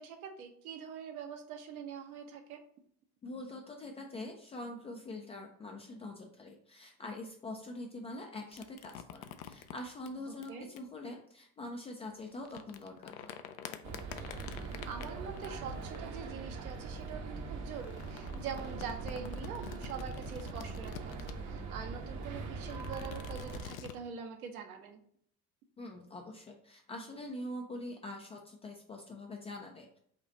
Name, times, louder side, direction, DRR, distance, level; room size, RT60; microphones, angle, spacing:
voice 1, 0.0-2.6 10.3-10.7 14.6-25.0, right 6 dB, 70° right, 5 dB, 0.9 m, -44 dB
voice 2, 3.2-13.3 25.8-30.0, left 1 dB, 15° left, 2 dB, 0.3 m, -44 dB
sound 1, 8.5-10.8 12.2-17.1 17.7-21.6 22.2-24.0, left 9 dB, 65° left, 0.6 m, -48 dB
sound 2, 13.8-23.7, right 4 dB, 40° right, 0.8 m, -42 dB
5.1 x 2.4 x 4.1 m, 0.64 s
figure-of-eight pair, 65°, 45 cm